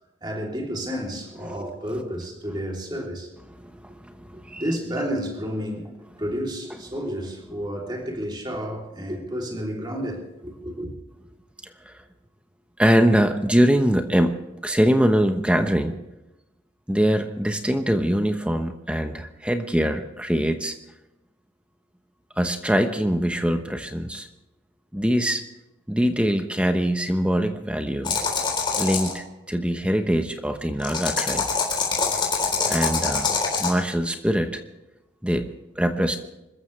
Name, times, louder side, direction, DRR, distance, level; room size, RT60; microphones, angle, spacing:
voice 1, 0.2-3.3 4.3-5.9 6.2-10.9, equal, 25° right, 0 dB, 3.2 m, -31 dB
voice 2, 3.6-4.6 11.8-12.0 12.8-14.4 14.6-16.0 16.9-20.8 22.4-24.3 24.9-25.4 25.9-28.2 28.7-31.4 32.6-34.6 35.2-35.5 35.8-36.2, equal, 5° right, 6 dB, 1.0 m, -23 dB
sound 1, 28.0-29.1 30.8-33.7, left 5 dB, 25° left, 3.9 m, -24 dB
25.5 x 14.0 x 3.3 m, 0.95 s
head